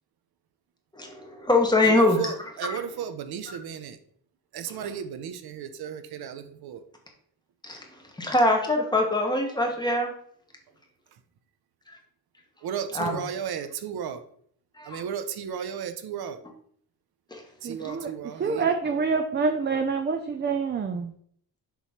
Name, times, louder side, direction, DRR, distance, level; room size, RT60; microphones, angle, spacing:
voice 1, 0.9-2.8 4.7-4.9 7.6-10.1 11.9-12.0 12.9-13.2 14.8-15.0 17.3-17.4 17.8-17.9, left 2 dB, 10° left, 1 dB, 1.3 m, -24 dB
voice 2, 1.8-4.0 4.5-6.8 12.6-14.2 14.8-16.4 17.6-18.7, right 8 dB, 80° right, 10 dB, 0.8 m, -34 dB
voice 3, 17.6-21.1, right 5 dB, 30° right, 6 dB, 0.5 m, -27 dB
6.9 x 3.1 x 5.8 m, 0.62 s
wide cardioid pair, 150°, 37 cm